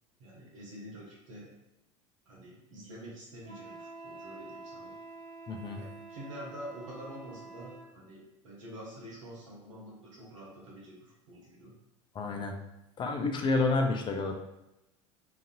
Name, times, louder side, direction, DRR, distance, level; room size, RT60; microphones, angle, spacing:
voice 1, 0.2-1.5 2.3-4.9 5.8-11.7, equal, 85° right, -4 dB, 1.1 m, -47 dB
Wind instrument woodwind instrument, 3.4-7.9, right 3 dB, 60° right, 0.9 m, -47 dB
voice 2, 5.5-5.8 12.1-12.5 13.0-14.4, left 3 dB, 30° left, 4 dB, 0.5 m, -29 dB
2.8 x 2.5 x 2.6 m, 0.92 s
hypercardioid pair, 80°, 16 cm